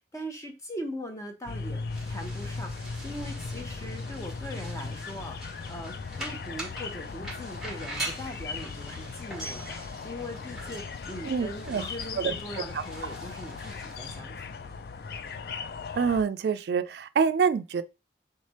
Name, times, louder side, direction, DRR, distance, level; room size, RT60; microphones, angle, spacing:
voice 1, 0.0-1.8 2.1-9.7 10.0-14.5, equal, 15° left, 0.8 m, -40 dB
sound 1, 1.5-16.2, left 4 dB, 55° left, 0.3 m, -38 dB
sound 2, 1.9-14.2, right 2 dB, ahead, 1.3 m, -43 dB
voice 2, 11.3-11.9 12.2-12.3 15.9-17.8, right 6 dB, 65° right, 0.3 m, -26 dB
3.5 x 3.3 x 4.2 m
head